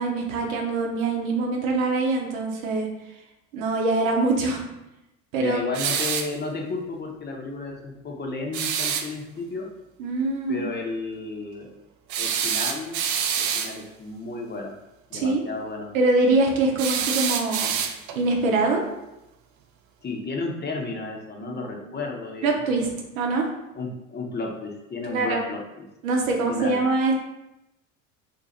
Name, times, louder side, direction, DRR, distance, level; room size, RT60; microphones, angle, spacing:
voice 1, 0.0-2.9 3.5-4.7 5.3-5.6 10.0-10.6 15.1-15.4 15.9-17.7 18.1-18.8 21.4-21.6 21.8-21.9 22.4-22.9 23.1-23.5 25.0-25.4 26.0-27.1, right 3 dB, 80° right, 1 dB, 0.8 m, -23 dB
voice 2, 5.4-9.7 10.5-11.7 12.2-13.0 13.4-14.7 15.1-15.9 20.0-22.6 23.7-25.9 26.5-26.8, left 3 dB, 25° left, 0 dB, 0.7 m, -33 dB
sound 1, 5.7-6.4 8.5-9.1 12.1-13.8 16.8-18.2, right 7 dB, 45° right, 0.5 m, -26 dB
2.6 x 2.4 x 4.1 m, 0.93 s
hypercardioid pair, 75°, 41 cm